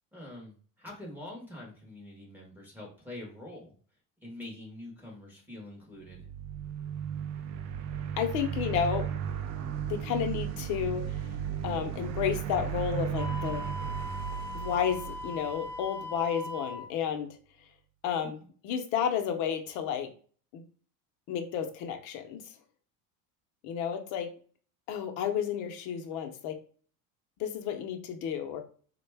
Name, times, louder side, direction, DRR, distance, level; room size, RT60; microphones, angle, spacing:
voice 1, 0.1-3.7 4.2-6.3, left 1 dB, 5° right, -3 dB, 0.7 m, -45 dB
sound 1, 6.0-16.2, right 8 dB, 50° right, 0.4 m, -35 dB
voice 2, 8.2-9.1 9.9-11.2 11.6-13.7 14.5-17.4 18.0-18.4 18.6-20.1 20.5-20.6 21.3-22.4 23.6-24.3 24.9-26.6 27.4-28.6, left 8 dB, 55° left, 6 dB, 0.6 m, -31 dB
Wind instrument woodwind instrument, 13.2-16.9, left 2 dB, 35° right, 1.0 m, -40 dB
3.6 x 2.1 x 3.3 m, 0.43 s
cardioid pair, 160°, 34 cm